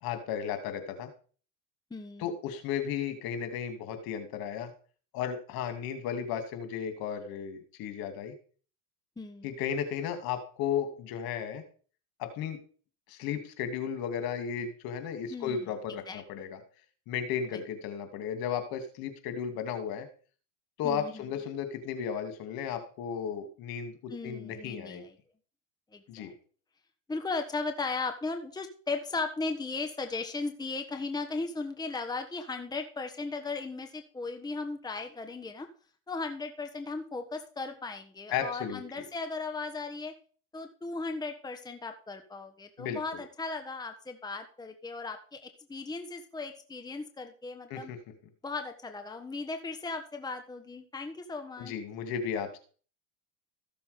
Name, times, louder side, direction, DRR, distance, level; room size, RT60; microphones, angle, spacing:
voice 1, 0.0-1.1 2.2-4.7 5.1-8.3 9.4-11.6 12.2-12.6 13.1-16.6 17.1-20.1 20.8-25.0 26.1-26.3 38.3-39.0 42.8-43.2 47.7-48.0 51.6-52.6, left 8 dB, 60° left, 7 dB, 2.8 m, -34 dB
voice 2, 1.9-2.3 9.2-9.5 15.3-15.7 16.1-16.2 17.5-17.6 20.8-21.2 24.1-25.1 25.9-26.3 27.1-35.7 36.1-40.1 40.5-47.9 48.4-51.7, left 3 dB, 10° left, 6 dB, 1.3 m, -37 dB
14.5 x 7.0 x 5.2 m, 0.41 s
supercardioid pair, 110°, 40 cm